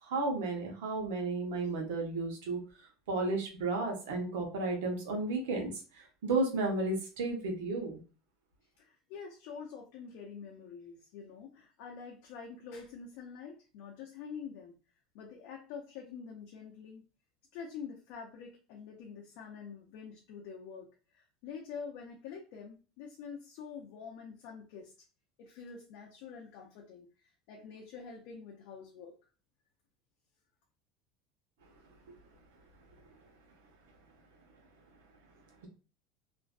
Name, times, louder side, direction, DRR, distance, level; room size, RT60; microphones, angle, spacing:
voice 1, 0.0-8.0 32.1-32.2, right 3 dB, 90° right, 2 dB, 0.8 m, -33 dB
voice 2, 8.8-14.7 15.1-17.0 17.5-20.9 21.1-24.9 25.4-29.2, left 6 dB, 65° left, 0 dB, 0.5 m, -46 dB
2.5 x 2.1 x 2.3 m, 0.35 s
supercardioid pair, 125°, 0 cm